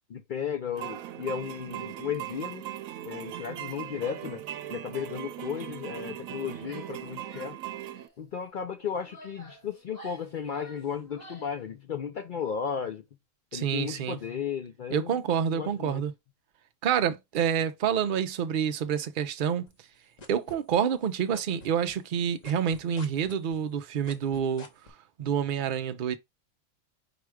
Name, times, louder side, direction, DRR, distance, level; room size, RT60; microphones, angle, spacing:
voice 1, 0.1-2.7 3.0-4.4 4.7-7.6 8.2-13.0 13.5-15.1 15.5-16.1, left 7 dB, 65° left, 0.5 m, -34 dB
sound 1, 0.7-8.1, right 12 dB, 80° right, 1.0 m, -39 dB
Female speech woman speaking / Yell, 6.6-7.0 7.3-8.1 8.8-11.6, right 1 dB, 85° left, 2.9 m, -51 dB
voice 2, 13.5-14.2 14.9-16.1 16.8-19.7 20.3-24.7 25.2-26.2, right 8 dB, 55° right, 0.6 m, -28 dB
sound 2, 19.7-21.1 21.3-24.9, left 3 dB, 35° left, 0.8 m, -47 dB
5.0 x 2.3 x 4.6 m
omnidirectional pair, 1.4 m